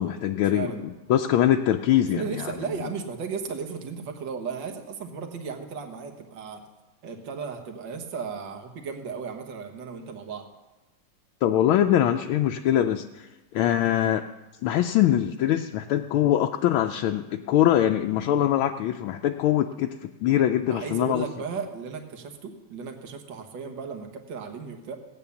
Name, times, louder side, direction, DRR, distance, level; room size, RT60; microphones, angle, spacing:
voice 1, 0.0-2.5 11.4-14.3 14.6-21.2, left 11 dB, 80° left, 5 dB, 1.4 m, -23 dB
voice 2, 2.1-6.6 7.0-10.5 20.7-24.9, right 5 dB, 60° right, 5 dB, 1.9 m, -35 dB
17.0 x 8.8 x 7.0 m, 1.1 s
omnidirectional pair, 2.3 m